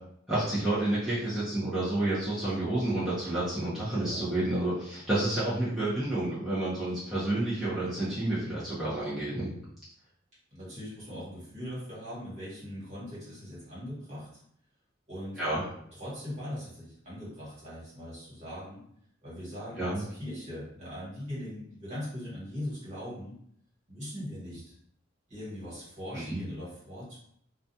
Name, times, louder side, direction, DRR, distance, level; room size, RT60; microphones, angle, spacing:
voice 1, 0.3-9.5 15.4-15.6 19.8-20.0 26.1-26.4, right 1 dB, ahead, -12 dB, 0.7 m, -30 dB
voice 2, 3.9-4.3 10.5-14.3 15.1-15.4 16.0-18.8 19.2-23.3 23.9-24.7 25.3-27.2, equal, 35° right, -9 dB, 1.3 m, -40 dB
2.4 x 2.3 x 2.7 m, 0.69 s
head